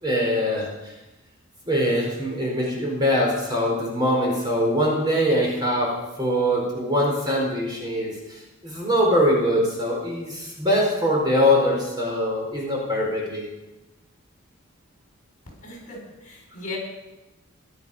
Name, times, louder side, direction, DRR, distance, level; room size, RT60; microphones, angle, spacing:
voice 1, 0.0-0.9 1.6-5.9 6.2-13.4, equal, 20° right, -2 dB, 4.5 m, -23 dB
voice 2, 15.6-16.8, left 2 dB, 35° left, -1 dB, 6.8 m, -37 dB
17.5 x 12.5 x 5.6 m, 1.0 s
head